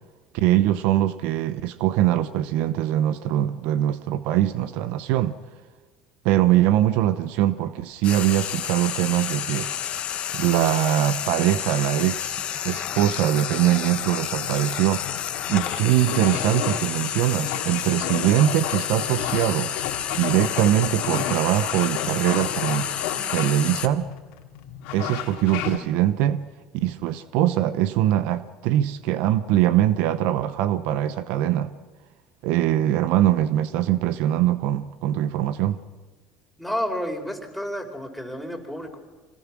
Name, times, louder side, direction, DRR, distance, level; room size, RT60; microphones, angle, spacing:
voice 1, 0.3-5.4 6.2-9.7 10.3-15.0 15.5-19.7 20.1-22.9 23.3-24.1 24.9-26.5 26.7-31.7 32.4-35.8, right 13 dB, 70° right, 14 dB, 0.9 m, -22 dB
Frying (food), 8.0-23.9, left 10 dB, 50° left, 1.5 m, -30 dB
sound 1, 14.2-25.8, left 10 dB, 70° left, 2.4 m, -33 dB
voice 2, 36.6-39.0, equal, ahead, 3 dB, 4.7 m, -30 dB
25.5 x 18.5 x 6.2 m, 1.3 s
hypercardioid pair, 75°, 2 cm